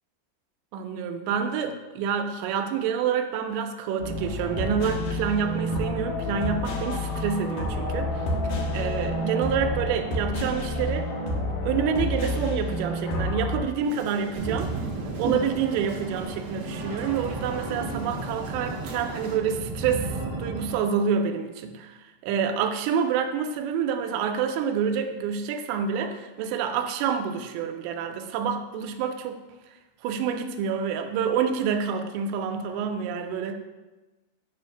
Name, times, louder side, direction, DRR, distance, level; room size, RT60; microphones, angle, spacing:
voice 1, 0.7-11.1 11.6-14.7 15.2-29.4 30.0-33.5, right 7 dB, 90° right, 6 dB, 2.8 m, -28 dB
sound 1, 4.0-13.6, left 1 dB, 75° left, 2.0 m, -29 dB
sound 2, 13.8-19.4, right 2 dB, 75° right, 2.3 m, -37 dB
sound 3, 14.4-20.8, right 3 dB, 50° right, 1.0 m, -34 dB
7.2 x 2.5 x 5.7 m, 1.1 s
omnidirectional pair, 4.9 m